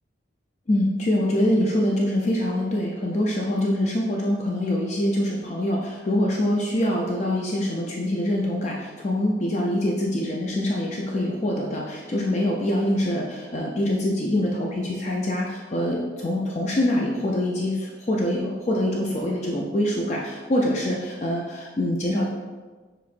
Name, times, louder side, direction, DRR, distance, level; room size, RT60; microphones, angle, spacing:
voice 1, 0.7-22.3, left 1 dB, 40° left, -2 dB, 0.4 m, -24 dB
7.0 x 3.1 x 2.5 m, 1.3 s
head